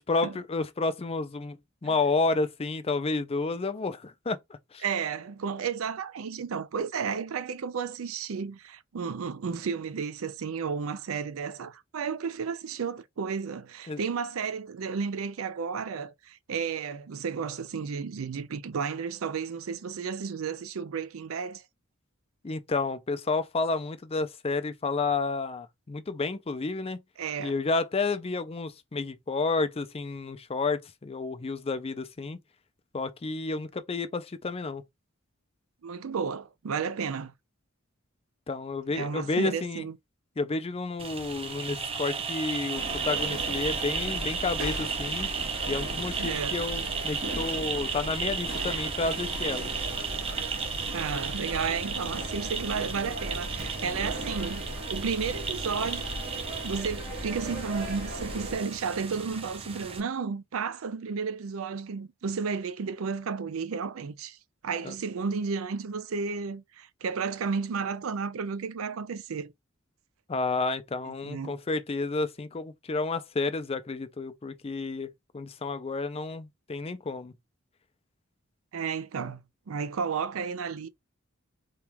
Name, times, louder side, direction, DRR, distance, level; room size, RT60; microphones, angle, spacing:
voice 1, 0.1-1.6 1.8-4.4 4.7-4.8 13.9-14.0 22.4-27.0 27.4-32.4 32.9-34.8 38.5-39.8 40.4-45.3 45.7-49.7 64.8-64.9 70.3-77.3, left 3 dB, 30° left, 0.5 m, -30 dB
voice 2, 4.8-21.6 27.2-27.5 35.8-37.3 38.9-40.0 46.2-46.6 50.9-56.1 56.6-64.4 64.6-69.5 71.0-71.6 78.7-80.9, right 5 dB, 80° right, 0.5 m, -33 dB
sound 1, 41.0-60.0, right 5 dB, 30° right, 0.7 m, -34 dB
sound 2, 42.8-58.6, right 1 dB, 45° right, 2.4 m, -37 dB
4.3 x 2.4 x 3.4 m
head